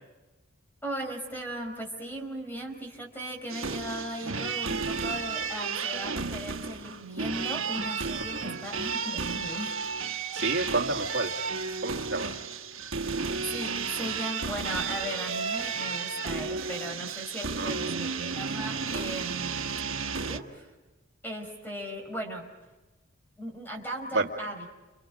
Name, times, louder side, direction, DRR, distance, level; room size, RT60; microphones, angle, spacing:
voice 1, 0.8-9.8 13.4-19.7 20.2-20.7 21.2-22.5 23.4-24.6, right 1 dB, 10° left, 3 dB, 5.1 m, -37 dB
sound 1, 3.5-20.4, right 5 dB, 85° right, 1.4 m, -33 dB
voice 2, 10.3-11.3 11.8-12.3 17.6-17.7 24.1-24.3, right 3 dB, 60° right, 1 dB, 2.2 m, -29 dB
30.0 x 29.5 x 5.1 m, 1.1 s
head